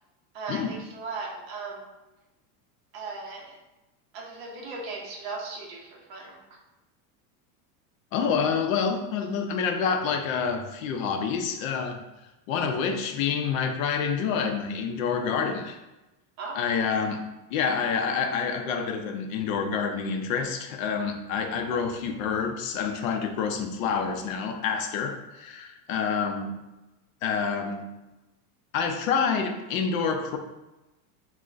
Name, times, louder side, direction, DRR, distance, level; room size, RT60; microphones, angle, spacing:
voice 1, 0.3-1.9 2.9-3.6 4.1-6.4 16.4-16.6, right 3 dB, 45° right, 0 dB, 0.6 m, -37 dB
voice 2, 8.1-12.0 12.5-15.8 16.5-17.2 17.5-26.6 27.2-27.9 28.7-30.4, left 6 dB, 60° left, 5 dB, 0.5 m, -28 dB
5.7 x 2.1 x 2.5 m, 1.0 s
supercardioid pair, 180°, 46 cm